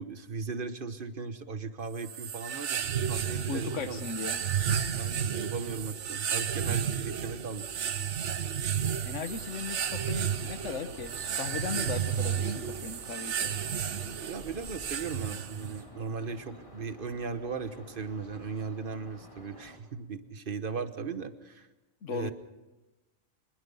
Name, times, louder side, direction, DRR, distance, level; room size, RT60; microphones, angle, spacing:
voice 1, 0.0-4.0 4.9-7.7 13.9-14.0 14.3-21.7 22.1-22.3, right 5 dB, 50° right, 10 dB, 1.3 m, -37 dB
sound 1, 2.0-15.8, right 8 dB, 70° right, 1.2 m, -32 dB
voice 2, 3.5-4.4 9.0-13.5 22.0-22.3, left 5 dB, 85° left, 11 dB, 1.5 m, -37 dB
sound 2, 9.2-19.8, equal, 25° left, 2.8 m, -50 dB
24.5 x 21.0 x 5.6 m, 1.1 s
omnidirectional pair, 1.2 m